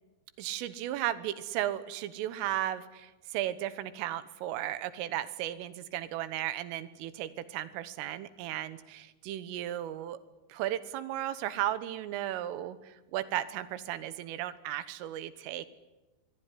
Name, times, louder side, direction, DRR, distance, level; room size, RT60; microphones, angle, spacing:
voice 1, 0.4-10.2 10.5-15.7, right 13 dB, 90° right, 13 dB, 3.8 m, -35 dB
25.0 x 21.0 x 9.9 m, 1.1 s
omnidirectional pair, 5.7 m